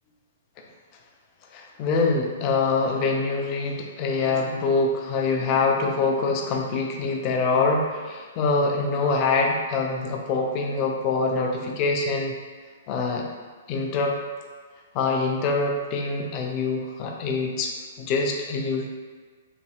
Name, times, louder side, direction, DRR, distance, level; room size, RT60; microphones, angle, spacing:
voice 1, 1.5-12.4 12.9-13.2 13.7-14.2 14.9-17.7 18.0-18.9, left 3 dB, 35° left, 1 dB, 0.4 m, -24 dB
3.0 x 2.6 x 2.2 m, 1.5 s
figure-of-eight pair, 115°, 0 cm